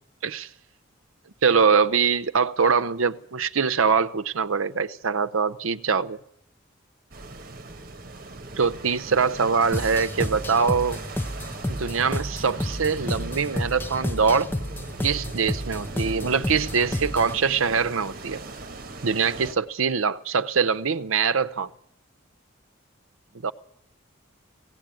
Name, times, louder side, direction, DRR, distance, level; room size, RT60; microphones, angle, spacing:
voice 1, 1.4-6.2 8.6-11.0 11.7-14.5 15.0-18.4 19.0-21.7 23.4-23.5, right 5 dB, 85° right, 0.7 m, -23 dB
sound 1, 7.1-19.5, right 2 dB, 45° right, 1.3 m, -39 dB
sound 2, 9.7-17.4, left 1 dB, 10° left, 0.8 m, -31 dB
17.5 x 16.5 x 9.0 m
head